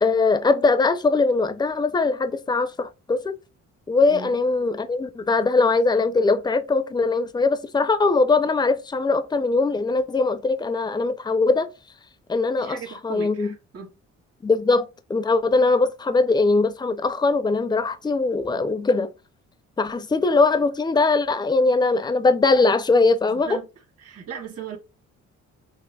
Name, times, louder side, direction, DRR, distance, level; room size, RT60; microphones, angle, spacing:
voice 1, 0.0-3.3 3.9-11.7 12.3-12.8 13.0-13.5 14.4-19.1 19.8-23.5, left 3 dB, 15° left, 0.5 m, -21 dB
voice 2, 4.1-4.4 12.6-13.9 23.4-23.7 24.0-24.8, right 7 dB, 50° right, 1.8 m, -37 dB
6.1 x 2.1 x 2.3 m
cardioid pair, 90°, 30 cm